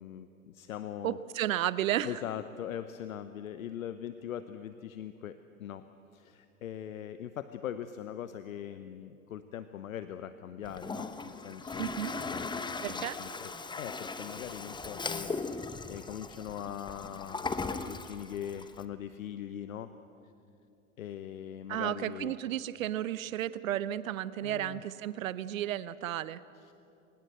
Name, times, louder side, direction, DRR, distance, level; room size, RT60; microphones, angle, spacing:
voice 1, 0.0-1.2 2.0-5.9 6.1-13.5 13.8-19.9 21.0-22.3 24.4-24.9 26.5-26.7, left 10 dB, 75° left, 11 dB, 0.9 m, -41 dB
voice 2, 1.0-2.1 11.8-12.2 12.8-13.2 21.7-26.4, right 12 dB, 70° right, 17 dB, 0.9 m, -33 dB
Toilet flush, 10.6-18.8, left 4 dB, 10° left, 1.0 m, -38 dB
25.0 x 20.0 x 8.0 m, 2.7 s
hypercardioid pair, 85°, 41 cm